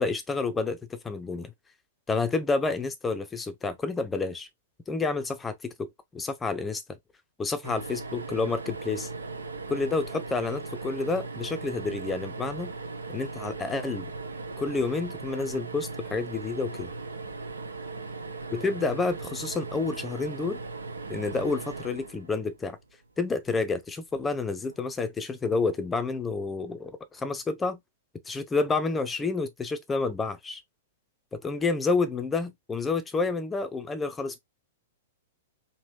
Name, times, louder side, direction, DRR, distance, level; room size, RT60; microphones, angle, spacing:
voice 1, 0.0-1.5 2.1-4.5 4.9-7.0 7.4-9.1 9.7-12.7 13.1-14.1 14.6-16.9 18.5-20.6 21.1-22.8 23.2-27.8 28.3-30.6 31.3-34.4, left 3 dB, 15° left, 0.5 m, -29 dB
sound 1, 7.6-22.9 24.6-24.8 25.1-25.2, right 3 dB, 75° right, 0.6 m, -38 dB
3.1 x 2.7 x 2.5 m
figure-of-eight pair, 100°, 0 cm